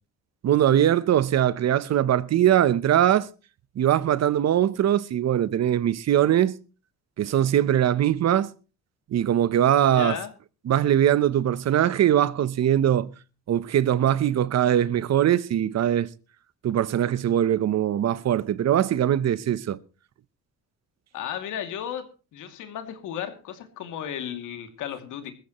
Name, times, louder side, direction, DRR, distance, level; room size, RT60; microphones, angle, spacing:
voice 1, 0.4-3.3 3.8-6.6 7.2-8.5 9.1-10.2 10.7-13.1 13.5-16.1 16.6-19.8, right 11 dB, 60° right, 0.9 m, -21 dB
voice 2, 9.9-10.3 21.1-22.1 22.3-25.3, left 9 dB, 85° left, 2.6 m, -34 dB
20.5 x 15.0 x 3.1 m
cardioid pair, 90°, 30 cm